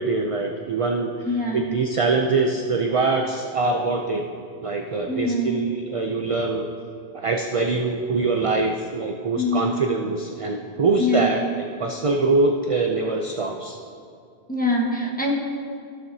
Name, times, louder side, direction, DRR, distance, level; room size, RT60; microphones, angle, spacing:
voice 1, 0.0-1.3 1.5-4.3 4.6-6.7 7.1-11.4 11.8-13.8, right 3 dB, 50° right, 3 dB, 0.4 m, -23 dB
voice 2, 1.2-1.8 5.1-5.6 9.3-9.8 11.0-11.3 14.5-15.3, left 1 dB, 10° left, -2 dB, 1.1 m, -24 dB
14.0 x 7.6 x 2.7 m, 2.4 s
omnidirectional pair, 1.1 m